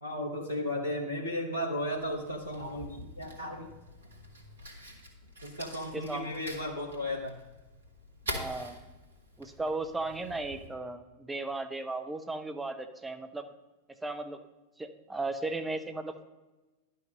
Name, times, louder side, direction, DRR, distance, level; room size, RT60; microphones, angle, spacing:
voice 1, 0.0-3.7 5.4-7.4, left 1 dB, 85° right, 2 dB, 0.9 m, -35 dB
Fire, 1.9-10.7, equal, 70° right, 1.6 m, -45 dB
voice 2, 5.9-6.3 8.3-8.8 9.4-13.4 14.0-14.4 14.8-16.2, right 2 dB, 10° right, 8 dB, 0.8 m, -36 dB
10.5 x 5.7 x 5.2 m, 1.1 s
figure-of-eight pair, 90°, 0 cm